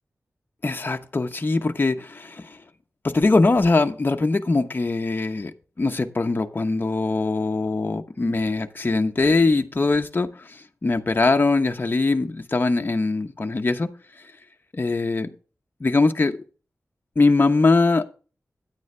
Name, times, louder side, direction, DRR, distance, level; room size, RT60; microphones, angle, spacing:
voice 1, 0.6-2.6 3.0-13.9 14.7-15.3 15.8-16.4 17.2-18.0, left 3 dB, 40° left, 5 dB, 1.0 m, -22 dB
9.8 x 9.2 x 3.3 m, 0.36 s
wide cardioid pair, 100°, 5 cm